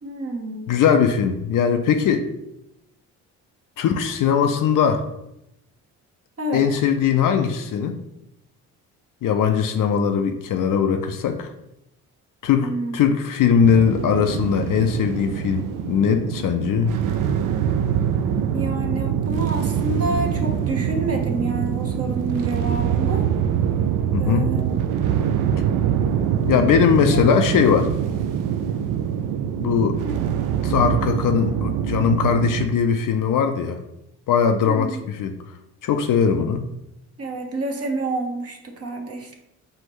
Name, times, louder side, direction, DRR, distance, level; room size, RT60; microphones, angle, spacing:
voice 1, 0.0-0.7 6.4-6.7 12.6-13.1 18.5-23.2 24.2-24.9 27.1-27.2 30.0-30.2 34.6-35.1 37.2-39.4, right 2 dB, 35° right, 2 dB, 1.0 m, -29 dB
voice 2, 0.7-2.3 3.8-5.0 6.5-8.0 9.2-11.5 12.4-16.9 24.1-24.5 26.4-27.9 29.6-30.0 30.6-33.8 34.3-34.9 35.2-35.4 35.8-36.7, left 7 dB, 50° left, 6 dB, 0.5 m, -20 dB
sound 1, 13.6-32.7, right 9 dB, 50° right, 0.5 m, -24 dB
5.5 x 2.6 x 3.1 m, 0.84 s
hypercardioid pair, 50°, 41 cm